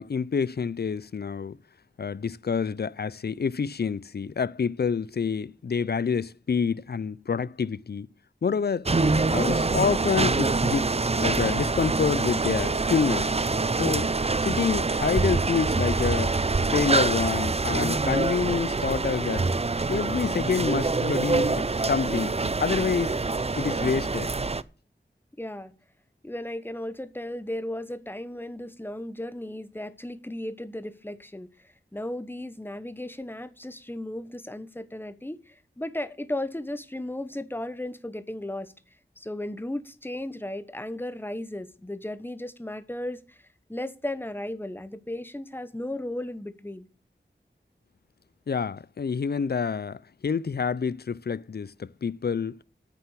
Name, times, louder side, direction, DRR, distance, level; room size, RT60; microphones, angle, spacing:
voice 1, 0.0-1.6 2.0-8.1 8.4-8.9 9.3-10.9 11.2-13.4 13.8-14.1 14.4-16.4 16.7-19.5 19.9-22.3 22.6-23.2 23.5-24.3 48.5-52.6, left 6 dB, 60° left, 0.4 m, -27 dB
sound 1, 8.9-24.6, right 3 dB, 35° right, 0.5 m, -25 dB
voice 2, 25.4-25.7 26.2-38.7 39.2-43.4 43.7-46.8, left 1 dB, 10° left, 1.0 m, -35 dB
9.2 x 6.9 x 8.1 m
wide cardioid pair, 60°, 19 cm